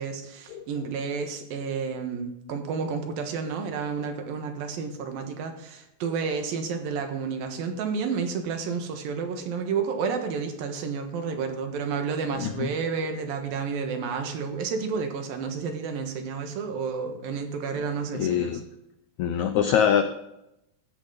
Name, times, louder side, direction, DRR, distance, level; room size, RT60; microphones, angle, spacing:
voice 1, 0.0-18.5, right 5 dB, 75° right, 5 dB, 3.1 m, -31 dB
voice 2, 18.1-18.6 19.2-20.0, left 8 dB, 85° left, 8 dB, 1.6 m, -23 dB
14.0 x 9.9 x 3.9 m, 0.85 s
omnidirectional pair, 4.3 m